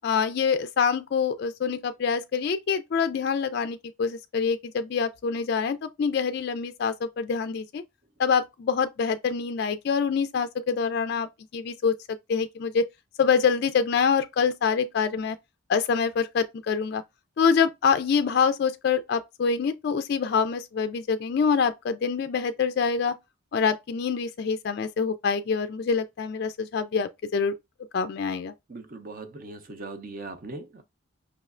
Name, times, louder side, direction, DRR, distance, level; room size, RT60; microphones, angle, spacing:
voice 1, 0.0-7.8 8.2-12.8 13.2-15.4 15.7-17.0 17.4-23.2 23.5-27.5 27.9-28.5, left 6 dB, 50° left, 0.3 m, -25 dB
voice 2, 28.7-30.8, right 2 dB, 40° right, 0.6 m, -39 dB
5.4 x 3.1 x 2.4 m
head